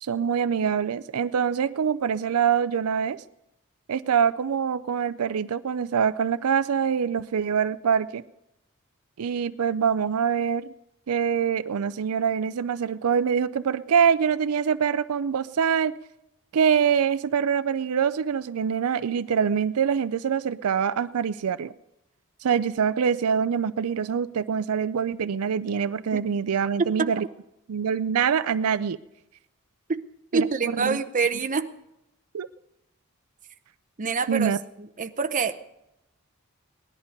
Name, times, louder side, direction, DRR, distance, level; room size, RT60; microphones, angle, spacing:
voice 1, 0.0-3.2 3.9-8.2 9.2-10.7 11.1-15.9 16.5-21.7 22.4-27.2 27.7-29.0 30.3-31.0 32.3-32.5 34.3-34.6, right 7 dB, 80° right, 14 dB, 0.4 m, -24 dB
voice 2, 26.8-27.1 29.9-30.0 30.3-31.7 34.0-34.5 35.0-35.5, right 4 dB, 35° right, 9 dB, 0.7 m, -25 dB
18.0 x 11.5 x 5.2 m, 0.88 s
head